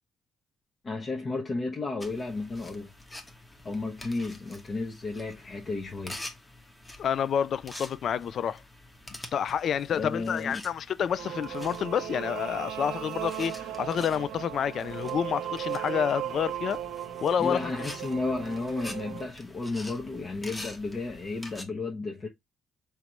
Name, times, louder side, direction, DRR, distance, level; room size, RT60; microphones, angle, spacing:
voice 1, 0.8-2.9 3.6-6.2 9.9-10.6 17.4-22.3, left 3 dB, 40° left, 1.0 m, -33 dB
sound 1, 2.0-21.6, left 1 dB, 15° left, 1.1 m, -47 dB
voice 2, 7.0-8.6 9.3-16.8 17.2-17.7, left 8 dB, 60° left, 0.4 m, -29 dB
sound 2, 11.2-19.3, right 11 dB, 85° right, 0.8 m, -37 dB
5.0 x 3.2 x 3.0 m
cardioid pair, 90°, 0 cm